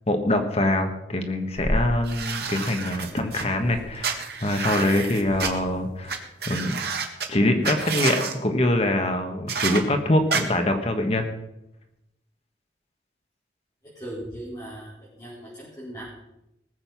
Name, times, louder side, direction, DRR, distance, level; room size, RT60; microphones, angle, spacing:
voice 1, 0.1-6.8 7.3-11.3, left 1 dB, 35° left, 5 dB, 1.3 m, -24 dB
sound 1, 1.5-1.9 3.0-3.2 3.5-4.0 5.1-5.8, equal, 15° right, 3.4 m, -31 dB
sound 2, 2.1-3.4 4.0-5.5 6.1-6.2 6.4-7.3 7.6-8.3 9.5-9.8 10.3-10.4, right 5 dB, 60° right, 1.6 m, -29 dB
voice 2, 13.9-16.0, right 1 dB, 20° left, -10 dB, 4.9 m, -38 dB
19.5 x 7.6 x 6.0 m, 0.88 s
head